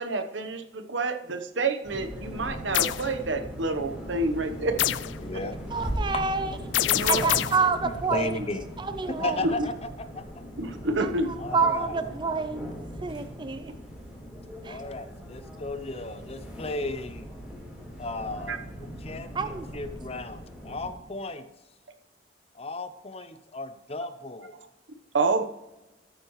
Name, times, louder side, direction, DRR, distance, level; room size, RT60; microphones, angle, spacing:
voice 1, 0.0-4.8 6.9-7.3 9.4-9.5 10.6-11.3 18.5-18.6 25.1-25.4, right 3 dB, 85° right, 8 dB, 1.0 m, -28 dB
sound 1, 1.8-20.9, equal, 5° right, 3.9 m, -39 dB
sound 2, 2.7-3.1 4.8-5.2 6.7-7.7, left 13 dB, 75° left, 0.4 m, -25 dB
voice 2, 5.2-5.6 6.1-6.2 6.8-7.4 7.8-8.7 9.1-10.2 11.4-12.0 14.6-17.3 18.0-18.8 19.0-21.5 22.5-24.6, left 2 dB, 35° left, 11 dB, 0.7 m, -35 dB
voice 3, 5.7-6.5 7.1-8.4 8.8-9.4 11.5-12.7 13.0-13.7 14.6-14.8 19.3-19.7, right 4 dB, 25° right, 10 dB, 0.4 m, -27 dB
13.5 x 9.6 x 3.1 m, 0.99 s
head